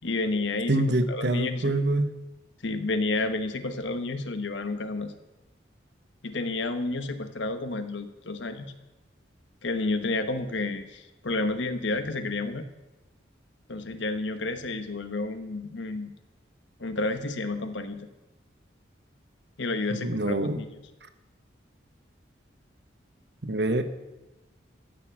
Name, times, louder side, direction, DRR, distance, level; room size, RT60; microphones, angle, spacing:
voice 1, 0.0-1.7 2.6-5.1 6.2-8.7 9.6-12.7 13.7-16.1 16.8-18.1 19.6-20.7, left 2 dB, 75° left, 9 dB, 1.1 m, -30 dB
voice 2, 0.7-2.1 19.9-20.6 23.4-23.8, right 1 dB, 60° right, 9 dB, 1.1 m, -25 dB
14.0 x 7.0 x 7.5 m, 1.1 s
head